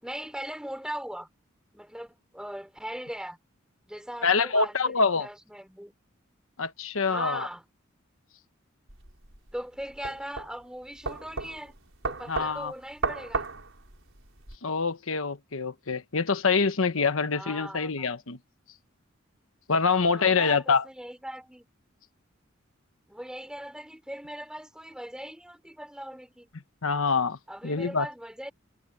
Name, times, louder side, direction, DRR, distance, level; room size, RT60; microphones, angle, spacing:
voice 1, 0.0-1.3 1.7-3.4 3.9-5.9 7.0-7.6 9.5-11.7 12.0-13.5 17.3-18.1 20.1-21.7 23.1-26.5 27.5-28.5, equal, 5° right, 4.9 m, -39 dB
voice 2, 4.2-5.3 6.6-7.5 12.3-12.7 14.6-18.4 19.7-20.8 26.8-27.4 27.6-28.1, left 5 dB, 80° left, 1.1 m, -25 dB
sound 1, 8.9-14.6, right 3 dB, 70° right, 5.7 m, -35 dB
head